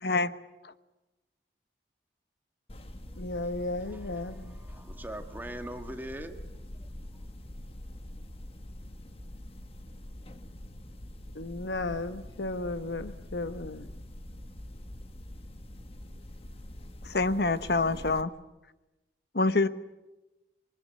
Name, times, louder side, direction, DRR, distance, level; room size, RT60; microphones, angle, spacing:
voice 1, 0.0-0.3 17.0-18.3 19.3-19.7, left 3 dB, 65° left, 1.1 m, -26 dB
sound 1, 2.7-18.2, left 1 dB, 35° left, 1.4 m, -45 dB
voice 2, 3.2-4.6 11.3-13.9, left 2 dB, 90° left, 1.1 m, -35 dB
voice 3, 4.1-6.4 6.8-6.9, right 1 dB, 10° right, 1.8 m, -42 dB
26.5 x 23.5 x 8.6 m
head